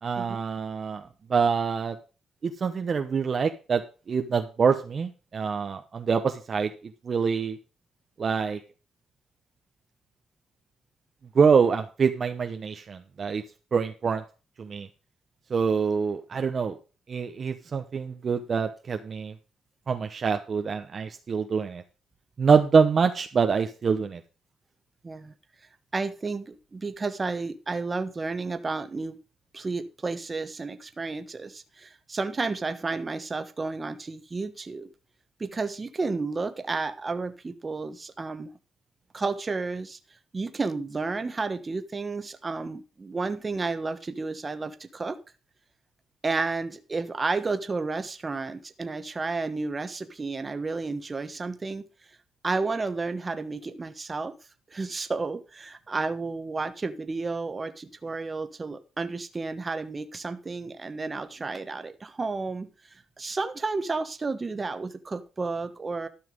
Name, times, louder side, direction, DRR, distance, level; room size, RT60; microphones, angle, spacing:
voice 1, 0.0-1.0 1.3-2.0 2.4-3.8 4.1-6.7 7.0-7.6 8.2-8.6 11.3-13.4 13.7-14.2 14.6-14.9 15.5-16.8 17.1-19.3 19.9-21.8 22.4-24.2, right 5 dB, 45° right, 6 dB, 1.0 m, -25 dB
voice 2, 25.9-29.2 29.5-34.9 35.4-38.5 39.1-40.0 40.3-45.2 46.2-51.8 52.4-54.3 54.7-62.7 63.2-66.1, right 3 dB, 30° right, 10 dB, 1.3 m, -31 dB
12.5 x 5.9 x 5.3 m, 0.34 s
cardioid pair, 90°, 0 cm